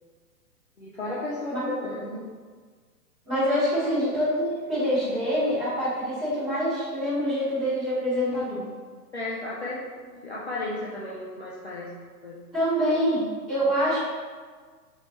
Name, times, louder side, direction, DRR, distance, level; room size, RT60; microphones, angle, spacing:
voice 1, 0.8-2.2 3.8-4.0 9.1-9.8 10.1-11.9 12.2-12.5 13.7-13.9, left 2 dB, 45° left, -7 dB, 0.4 m, -34 dB
voice 2, 3.2-8.7 12.5-14.0, equal, 5° right, -17 dB, 1.2 m, -25 dB
4.4 x 3.3 x 3.0 m, 1.5 s
hypercardioid pair, 180°, 48 cm